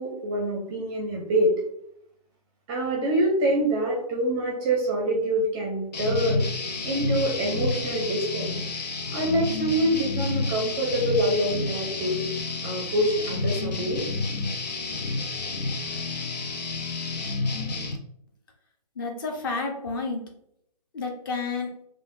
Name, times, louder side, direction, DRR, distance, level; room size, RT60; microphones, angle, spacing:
voice 1, 0.0-1.6 2.7-6.5 6.8-8.6 9.1-12.3 12.6-14.0, right 1 dB, 15° right, -1 dB, 0.6 m, -25 dB
sound 1, 5.9-18.0, left 3 dB, 75° left, 0.7 m, -30 dB
voice 2, 19.0-20.2 20.9-21.7, left 4 dB, 30° left, 2 dB, 0.7 m, -30 dB
4.8 x 2.4 x 2.5 m, 0.74 s
hypercardioid pair, 150°, 21 cm